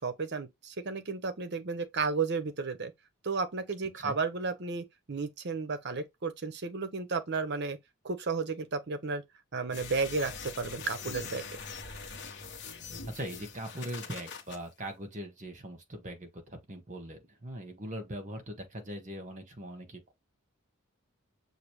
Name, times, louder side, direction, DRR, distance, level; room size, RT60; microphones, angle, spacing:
voice 1, 0.0-2.9 3.2-7.8 8.0-9.2 9.5-11.4, right 4 dB, 55° right, 0.8 m, -33 dB
sound 1, 9.7-14.6, left 5 dB, 55° left, 1.2 m, -43 dB
voice 2, 13.1-20.1, right 1 dB, 35° right, 1.4 m, -41 dB
6.5 x 2.6 x 3.1 m
head